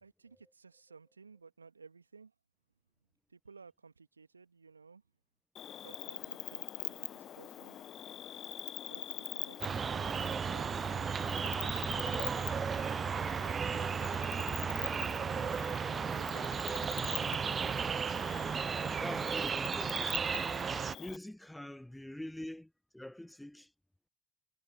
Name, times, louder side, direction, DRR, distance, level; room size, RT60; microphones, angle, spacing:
voice 1, 0.0-2.3 3.3-5.0 5.8-7.8 8.9-12.7, right 5 dB, 85° right, 2.3 m, -58 dB
Cricket, 5.6-21.2, left 10 dB, 45° left, 1.1 m, -44 dB
sound 1, 9.6-21.0, right 6 dB, 35° right, 0.5 m, -34 dB
voice 2, 18.9-20.2 21.0-23.7, left 1 dB, 5° left, 0.9 m, -45 dB
figure-of-eight pair, 55°, 0 cm